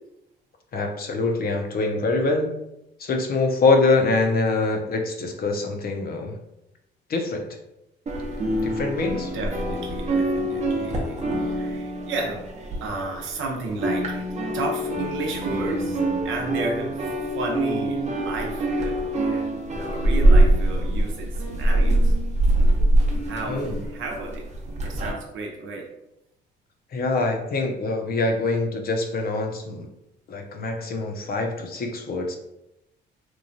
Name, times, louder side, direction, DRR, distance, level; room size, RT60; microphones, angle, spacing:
voice 1, 0.7-2.5 3.0-6.4 7.1-7.5 8.6-9.3 23.5-23.8 26.9-29.9 30.3-32.4, left 3 dB, 50° left, 4 dB, 0.5 m, -24 dB
sound 1, 8.1-13.4 13.6-25.1, right 1 dB, 35° right, 0.7 m, -23 dB
voice 2, 9.3-22.1 23.3-24.5 24.8-25.8, right 3 dB, 80° right, 1 dB, 0.7 m, -33 dB
3.0 x 2.2 x 2.6 m, 0.86 s
cardioid pair, 90°, 20 cm